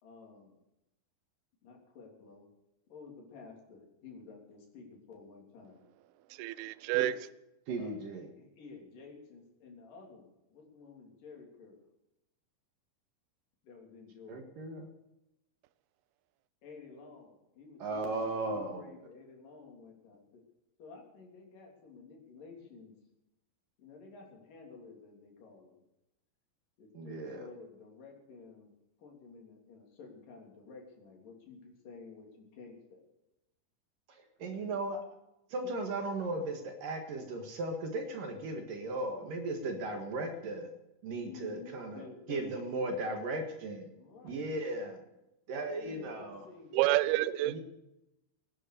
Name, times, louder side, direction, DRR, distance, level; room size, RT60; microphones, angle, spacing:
voice 1, 0.0-0.6 1.6-2.5 2.9-5.9 7.8-8.0 8.4-11.8 13.6-14.4 16.6-20.4 20.8-22.9 23.8-25.8 26.8-33.0 34.4-34.8 41.2-43.3 43.9-44.5 45.5-47.2, left 4 dB, 50° left, 4.7 m, -52 dB
voice 2, 6.3-7.1 46.7-47.6, right 16 dB, 85° right, 2.2 m, -28 dB
voice 3, 7.7-8.3 14.3-14.9 17.8-18.8 26.9-27.4 34.1-35.0 35.5-40.7 41.0-42.0 42.3-43.9 44.2-45.0 45.5-46.5 47.5-47.6, right 2 dB, 60° right, 2.8 m, -36 dB
18.5 x 9.9 x 6.8 m
omnidirectional pair, 5.3 m